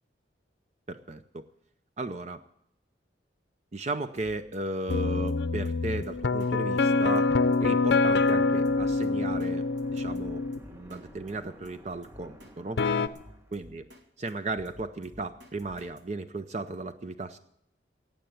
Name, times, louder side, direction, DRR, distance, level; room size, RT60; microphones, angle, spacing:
voice 1, 0.9-1.4 2.0-2.4 3.7-7.3 7.6-9.6 9.9-12.8 13.5-13.9 14.2-17.4, right 2 dB, 40° right, 10 dB, 0.6 m, -35 dB
Drum kit, 4.2-4.6 4.9-5.0 5.3-5.4 5.7-5.8 6.0-6.5 6.8-6.9 7.2-7.3 7.5-8.0 8.3-8.4 8.7-9.5 9.8-11.0 11.3-11.4 11.7-11.8 12.0-12.5 12.8-14.0 14.3-16.0, equal, 85° right, 2.2 m, -51 dB
sound 1, 4.9-10.6 12.8-13.1, left 3 dB, 70° left, 0.6 m, -25 dB
sound 2, 8.0-13.6, equal, 15° right, 1.3 m, -50 dB
15.5 x 9.0 x 7.8 m, 0.74 s
head